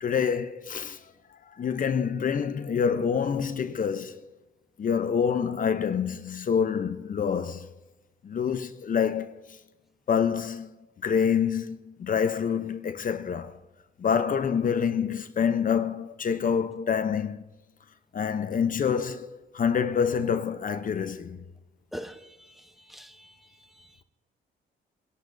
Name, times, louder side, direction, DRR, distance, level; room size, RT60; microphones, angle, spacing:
voice 1, 0.0-1.0 1.5-4.2 4.8-7.7 8.2-9.3 10.1-10.7 11.0-13.6 14.0-17.4 18.1-21.4, left 7 dB, 45° left, 0.8 m, -27 dB
voice 2, 21.9-23.3 23.8-24.0, equal, ahead, 0.9 m, -43 dB
23.0 x 12.0 x 2.7 m
cardioid pair, 90°, 20 cm